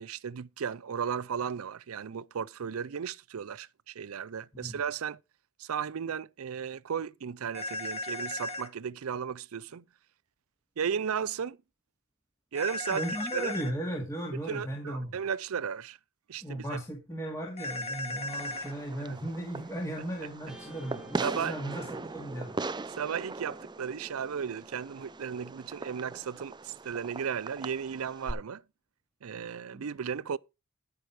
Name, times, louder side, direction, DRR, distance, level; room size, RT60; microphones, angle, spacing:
voice 1, 0.0-5.2 5.6-9.8 10.8-11.6 12.5-13.1 13.3-13.5 14.5-16.0 16.3-16.8 19.0-19.2 21.2-21.6 22.9-28.6 29.2-30.4, right 7 dB, 70° right, 0.5 m, -35 dB
sound 1, 7.5-8.7 12.6-13.7 17.6-18.7, left 1 dB, 30° left, 1.6 m, -36 dB
voice 2, 12.9-15.1 16.4-22.6 29.7-29.9, right 1 dB, 15° left, 2.3 m, -36 dB
Fireworks, 18.3-28.3, right 3 dB, 20° right, 0.5 m, -40 dB
Guitar, 20.5-26.9, right 1 dB, ahead, 2.2 m, -53 dB
14.0 x 6.1 x 4.8 m
head